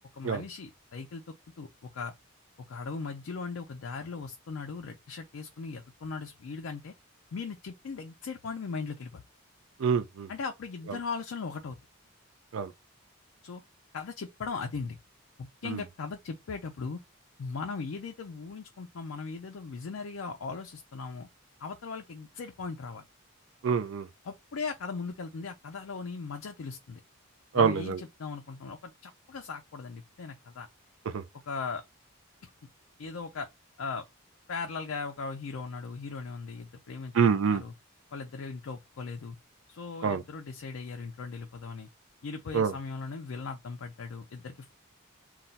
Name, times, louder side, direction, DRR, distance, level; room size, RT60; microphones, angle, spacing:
voice 1, 0.1-2.1 2.7-6.9 7.3-9.2 10.3-11.8 13.4-13.6 13.9-15.0 15.4-17.0 17.4-21.3 21.6-23.0 24.2-27.0 27.5-30.7 31.5-31.8 32.4-32.5 33.0-33.5 33.8-34.0 34.5-37.1 37.5-37.7 38.1-39.4 39.7-41.9 42.2-44.7, left 4 dB, 70° left, 0.4 m, -38 dB
voice 2, 9.8-10.3 12.5-12.7 15.7-15.8 23.6-24.1 27.5-28.0 31.1-31.2 37.1-37.6 40.0-40.2 42.5-42.7, right 6 dB, 70° right, 0.4 m, -26 dB
2.3 x 2.2 x 3.9 m
head